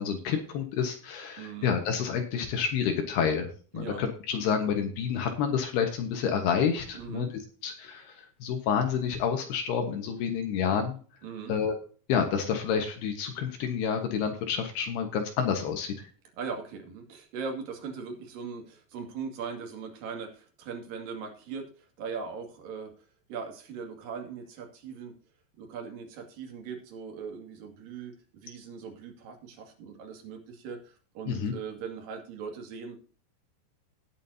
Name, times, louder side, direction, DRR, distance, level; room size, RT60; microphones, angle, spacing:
voice 1, 0.0-3.5 3.7-7.3 7.6-11.0 11.5-11.8 12.1-15.9 31.3-31.5, left 7 dB, 70° left, 5 dB, 3.2 m, -29 dB
voice 2, 1.4-1.7 3.7-4.0 6.9-7.3 11.2-11.5 16.4-22.9 23.3-25.1 25.6-33.0, right 5 dB, 55° right, 3 dB, 3.8 m, -40 dB
18.5 x 7.5 x 2.8 m, 0.40 s
omnidirectional pair, 5.0 m